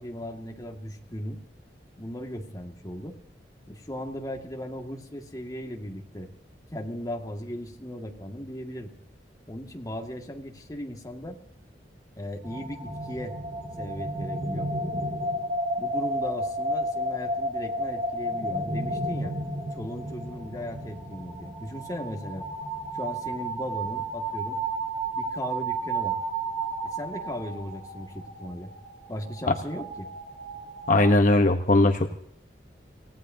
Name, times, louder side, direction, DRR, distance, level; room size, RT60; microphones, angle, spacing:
voice 1, 0.0-1.4 2.0-3.2 3.7-6.3 6.7-8.9 9.5-11.4 12.2-13.4 13.8-14.7 15.7-19.4 19.7-22.5 22.9-24.6 25.1-26.2 26.8-28.7 29.1-30.1, left 1 dB, 20° left, 2 dB, 2.0 m, -37 dB
sound 1, 12.4-31.1, right 1 dB, 45° right, 4.4 m, -32 dB
voice 2, 30.9-32.1, left 2 dB, 45° left, 5 dB, 1.0 m, -19 dB
28.0 x 17.0 x 2.8 m, 0.64 s
head